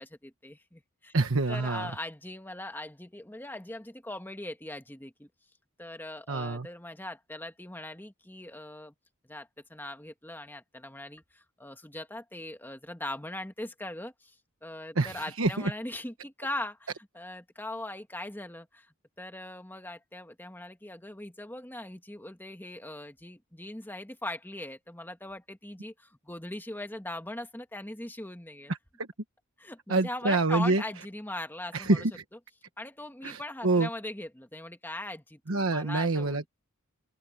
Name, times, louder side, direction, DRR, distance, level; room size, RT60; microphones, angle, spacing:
voice 1, 0.0-1.1 1.5-5.3 5.8-8.9 9.2-28.7 29.6-32.1 32.8-36.5, left 1 dB, 10° left, 1.6 m, -40 dB
voice 2, 1.1-1.9 6.3-6.7 15.0-15.7 28.7-29.1 29.9-30.8 31.7-32.1 33.2-33.9 35.5-36.4, right 3 dB, 65° right, 1.3 m, -27 dB
open air
head